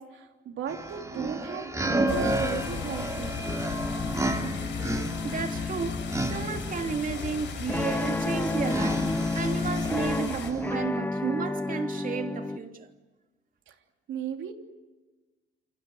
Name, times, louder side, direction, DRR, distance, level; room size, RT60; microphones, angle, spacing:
voice 1, 0.0-3.4 13.7-13.8 14.1-14.5, right 8 dB, 75° right, 3.3 m, -36 dB
sound 1, 0.7-10.7, right 2 dB, 15° right, 3.0 m, -33 dB
sound 2, 1.8-12.6, left 2 dB, 10° left, 1.3 m, -32 dB
sound 3, 2.1-10.5, left 7 dB, 70° left, 7.0 m, -37 dB
voice 2, 4.7-12.9, right 5 dB, 45° right, 3.1 m, -33 dB
28.0 x 24.0 x 7.9 m
cardioid pair, 90°, 20 cm